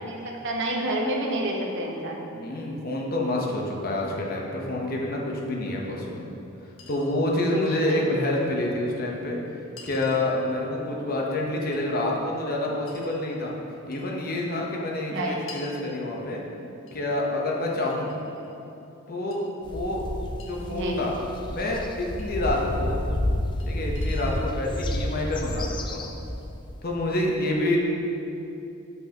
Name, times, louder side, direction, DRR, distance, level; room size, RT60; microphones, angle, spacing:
voice 1, 0.0-2.3 7.5-8.1 15.1-15.4 20.7-21.0, right 1 dB, 60° right, 0 dB, 0.9 m, -29 dB
voice 2, 2.3-6.3 6.9-9.4 9.8-13.5 13.9-16.4 16.9-18.1 19.1-20.1 20.4-21.1 21.5-23.0 23.6-26.0 26.8-27.8, left 1 dB, 50° left, -1 dB, 0.9 m, -28 dB
Chink clink, 5.8-5.9 6.8-7.1 8.4-8.5 9.8-10.3 11.7-11.9 12.9-13.2 13.9-14.1 15.5-15.7 16.9-17.0 17.9-18.6 19.3-19.4 20.4-20.5 22.2-22.3 23.6-23.7 23.9-24.4, left 4 dB, 70° left, 1.2 m, -46 dB
sound 1, 19.6-26.8, left 1 dB, 25° left, 0.4 m, -30 dB
7.8 x 5.6 x 2.9 m, 2.8 s
head